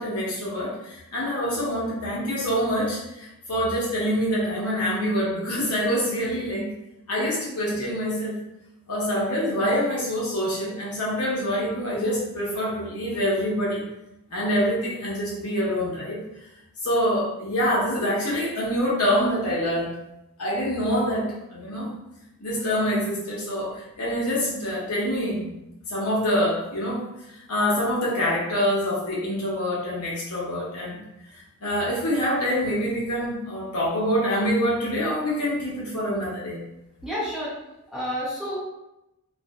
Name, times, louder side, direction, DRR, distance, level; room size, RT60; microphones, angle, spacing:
voice 1, 0.0-6.7 7.1-8.4 8.9-13.8 14.3-16.2 16.8-19.9 20.4-21.9 22.4-25.5 25.9-27.0 27.5-31.0 31.6-36.6, equal, 85° left, -5 dB, 0.9 m, -25 dB
voice 2, 37.0-37.5 37.9-38.6, equal, ahead, -10 dB, 0.8 m, -29 dB
2.5 x 2.5 x 2.2 m, 0.89 s
head